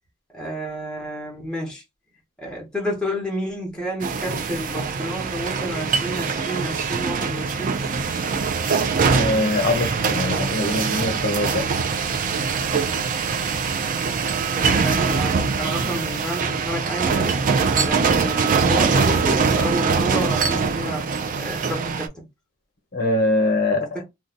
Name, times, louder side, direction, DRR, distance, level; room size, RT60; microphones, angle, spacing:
voice 1, 0.3-1.8 2.4-7.8 14.7-17.4 17.8-21.0 21.4-22.2, equal, 5° left, 1.0 m, -30 dB
sound 1, 4.0-22.1, right 5 dB, 40° right, 0.4 m, -23 dB
voice 2, 9.1-11.7 15.8-16.0 22.9-24.0, left 2 dB, 45° left, 0.9 m, -23 dB
2.6 x 2.3 x 3.8 m
head